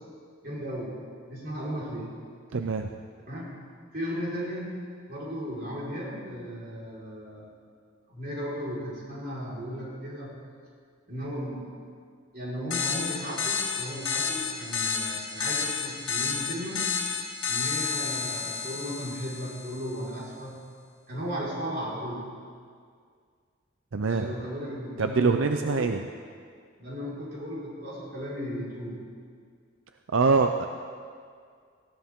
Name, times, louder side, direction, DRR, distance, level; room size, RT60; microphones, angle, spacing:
voice 1, 0.4-1.0 1.3-2.2 3.3-3.6 3.9-4.8 5.1-7.5 8.1-10.3 11.1-11.7 12.3-16.9 17.4-20.6 21.1-22.3 24.1-25.9 26.8-29.0, equal, 45° right, -7 dB, 4.7 m, -35 dB
voice 2, 2.5-2.9 23.9-24.3 25.0-26.0 30.1-30.7, right 4 dB, 80° right, 6 dB, 0.6 m, -24 dB
sound 1, 12.7-19.9, left 6 dB, 85° left, 1.6 m, -31 dB
18.5 x 16.0 x 3.7 m, 2.1 s
head